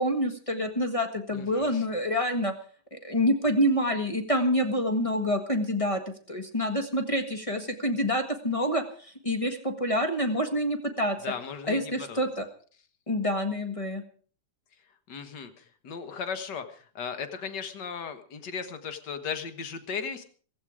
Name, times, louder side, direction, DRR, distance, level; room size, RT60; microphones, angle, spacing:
voice 1, 0.0-2.5 2.9-6.0 6.3-11.2 11.7-12.4 13.1-14.0, equal, 25° left, 6 dB, 0.6 m, -27 dB
voice 2, 1.3-1.9 11.2-12.2 15.1-20.2, left 6 dB, 45° left, 10 dB, 1.5 m, -36 dB
16.0 x 16.0 x 5.0 m, 0.43 s
omnidirectional pair, 3.5 m